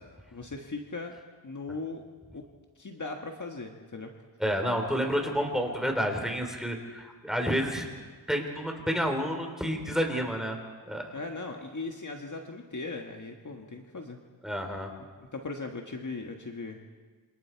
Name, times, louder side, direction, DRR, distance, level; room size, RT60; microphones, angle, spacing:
voice 1, 0.3-1.2 1.4-2.0 2.3-2.4 2.7-4.1 11.1-14.2 15.3-16.8, left 3 dB, 40° left, 3 dB, 1.6 m, -38 dB
voice 2, 4.4-7.9 8.3-10.6 10.9-11.1 14.4-14.9, equal, ahead, 3 dB, 3.7 m, -29 dB
28.0 x 26.0 x 4.6 m, 1.4 s
wide cardioid pair, 100°, 44 cm